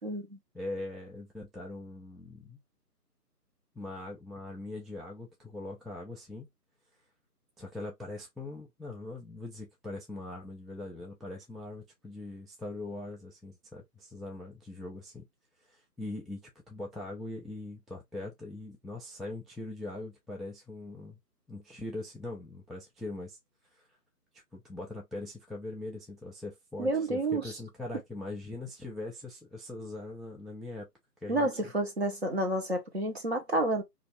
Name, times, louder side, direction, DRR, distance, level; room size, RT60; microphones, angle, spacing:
voice 1, 0.0-0.4 26.8-27.4 31.3-33.8, right 1 dB, 40° right, 0.7 m, -29 dB
voice 2, 0.5-2.6 3.8-6.5 7.6-15.2 15.7-21.2 21.5-23.4 23.8-23.9 24.5-30.9 31.2-31.5, left 2 dB, ahead, 0.4 m, -41 dB
2.4 x 2.3 x 3.1 m
figure-of-eight pair, 165°, 48 cm